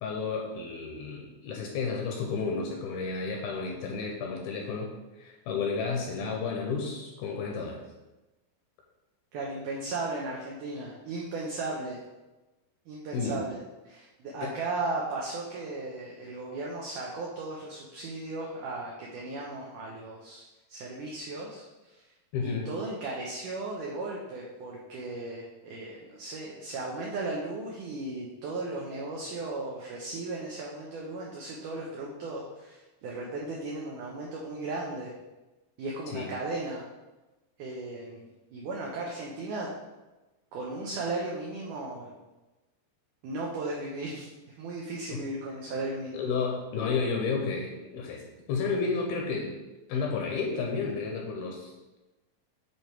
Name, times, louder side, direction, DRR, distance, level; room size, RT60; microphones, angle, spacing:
voice 1, 0.0-4.9 5.2-7.8 13.1-13.4 14.4-14.5 22.3-22.7 36.1-36.3 45.1-45.2 46.1-49.5 49.9-52.0, left 4 dB, 75° left, 0 dB, 2.4 m, -32 dB
voice 2, 9.3-12.0 12.9-13.6 13.9-20.4 20.7-21.6 21.9-22.0 22.4-35.1 35.8-36.8 37.6-39.7 40.5-42.2 43.2-44.3 44.6-46.2, right 2 dB, 75° right, -3 dB, 2.0 m, -36 dB
9.2 x 3.5 x 4.4 m, 1.1 s
omnidirectional pair, 4.7 m